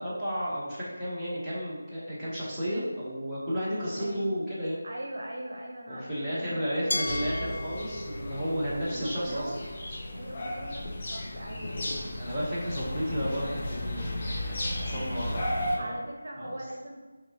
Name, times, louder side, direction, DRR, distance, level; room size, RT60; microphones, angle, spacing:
voice 1, 0.0-4.8 5.9-9.5 12.2-14.2 14.5-14.6 14.8-16.0 16.4-16.6, equal, 5° right, -14 dB, 1.1 m, -33 dB
voice 2, 4.0-4.3 4.8-7.6 8.9-9.6 10.1-11.8 13.1-13.6 15.7-17.1, right 1 dB, 60° right, 0 dB, 0.6 m, -40 dB
Glass, 6.9-9.8, left 1 dB, 75° left, 0.4 m, -36 dB
Birds Chirping and small amount of dog barking in background, 7.1-15.8, left 1 dB, 35° left, 0.7 m, -34 dB
5.1 x 2.9 x 2.9 m, 1.3 s
figure-of-eight pair, 165°, 0 cm